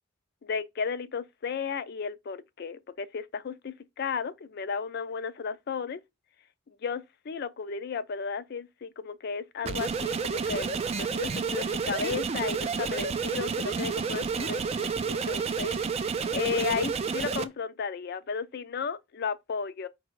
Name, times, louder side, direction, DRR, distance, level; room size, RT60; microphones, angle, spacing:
voice 1, 0.4-6.0 6.7-15.8 16.3-19.9, left 6 dB, 55° left, 0.4 m, -34 dB
sound 1, 9.6-17.4, right 5 dB, 30° right, 0.3 m, -30 dB
4.9 x 2.2 x 4.6 m
head